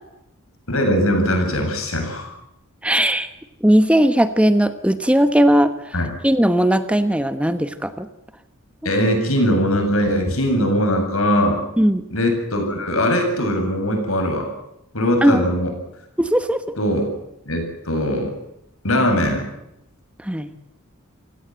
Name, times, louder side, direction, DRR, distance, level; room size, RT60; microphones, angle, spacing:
voice 1, 0.7-2.3 5.9-6.1 8.8-11.6 12.1-14.5 14.9-15.7 16.8-17.1 17.5-18.3 18.8-19.4, equal, 70° left, 5 dB, 7.7 m, -20 dB
voice 2, 2.8-3.3 3.6-5.9 6.2-8.1 11.8-12.0 15.2-15.4 16.2-16.6 20.2-20.5, equal, 5° right, 10 dB, 1.1 m, -17 dB
28.5 x 17.5 x 7.7 m, 0.83 s
head